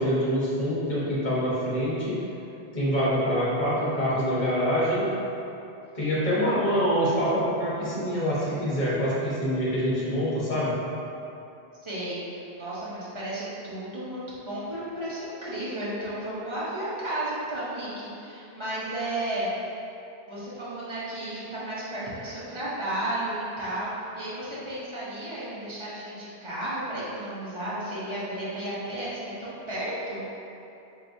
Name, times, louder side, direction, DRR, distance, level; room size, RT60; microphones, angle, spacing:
voice 1, 0.0-2.2 2.7-5.1 5.9-10.7, equal, 45° left, -10 dB, 1.4 m, -25 dB
voice 2, 11.8-19.5 20.3-30.2, right 1 dB, 30° right, -10 dB, 1.0 m, -33 dB
4.5 x 3.2 x 2.7 m, 2.8 s
omnidirectional pair, 1.1 m